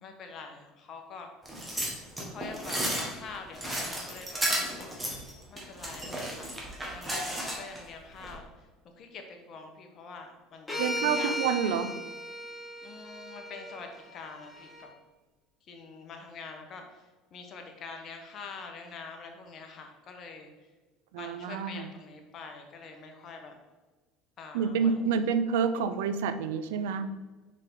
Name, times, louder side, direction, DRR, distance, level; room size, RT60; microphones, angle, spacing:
voice 1, 0.0-1.3 2.2-4.4 4.8-6.5 6.9-8.7 9.0-11.8 12.8-14.9 15.7-20.5 21.2-23.5 24.4-25.2, left 4 dB, 50° left, 4 dB, 1.2 m, -45 dB
sound 1, 1.5-7.8 8.2-8.4, right 1 dB, 15° right, 1.7 m, -33 dB
sound 2, 10.7-14.9, equal, 15° left, 1.8 m, -36 dB
voice 2, 10.8-12.0 21.1-21.9 24.5-27.2, right 6 dB, 85° right, 11 dB, 0.4 m, -28 dB
5.6 x 4.9 x 3.8 m, 1.2 s
supercardioid pair, 90°, 0 cm